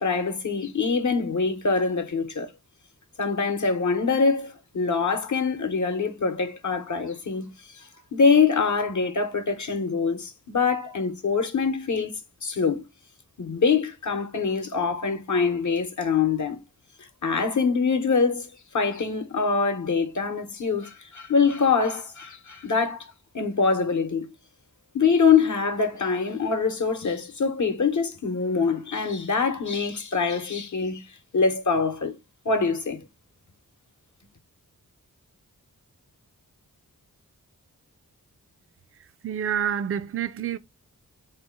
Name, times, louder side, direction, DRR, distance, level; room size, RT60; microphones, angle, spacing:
voice 1, 0.0-2.5 3.2-12.9 13.4-16.6 17.2-18.5 18.7-24.3 24.9-31.0 31.3-32.2 32.4-33.0, left 5 dB, 55° left, 0.9 m, -24 dB
voice 2, 39.2-40.6, right 8 dB, 40° right, 0.4 m, -27 dB
3.8 x 2.8 x 3.5 m
cardioid pair, 45°, 36 cm